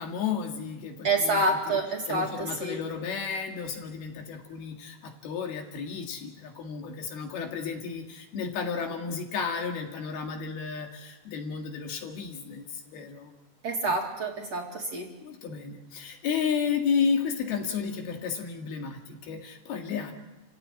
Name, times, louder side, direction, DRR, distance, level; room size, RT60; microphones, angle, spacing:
voice 1, 0.0-1.8 2.1-13.3 15.2-20.1, left 6 dB, 70° left, 3 dB, 3.9 m, -32 dB
voice 2, 1.0-2.8 13.6-15.1, right 2 dB, 45° right, 0 dB, 2.8 m, -28 dB
28.5 x 16.0 x 8.8 m, 1.1 s
omnidirectional pair, 4.7 m